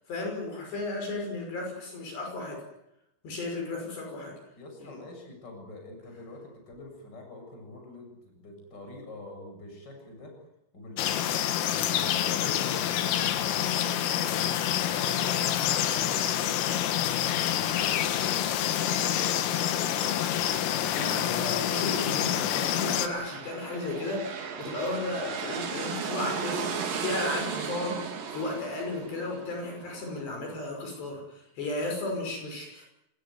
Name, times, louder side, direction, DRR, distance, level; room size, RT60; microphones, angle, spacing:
voice 1, 0.1-2.6 3.2-4.4 4.8-5.0 20.9-26.7 27.0-32.9, left 2 dB, 60° left, 2 dB, 7.8 m, -34 dB
voice 2, 4.6-10.3 10.7-11.6 11.9-17.0 17.4-20.1, left 2 dB, 20° left, 3 dB, 7.8 m, -45 dB
sound 1, 11.0-23.1, left 11 dB, 90° left, 4.2 m, -27 dB
sound 2, 22.9-30.5, right 6 dB, 50° right, 4.0 m, -36 dB
26.5 x 20.0 x 9.5 m, 0.83 s
omnidirectional pair, 5.7 m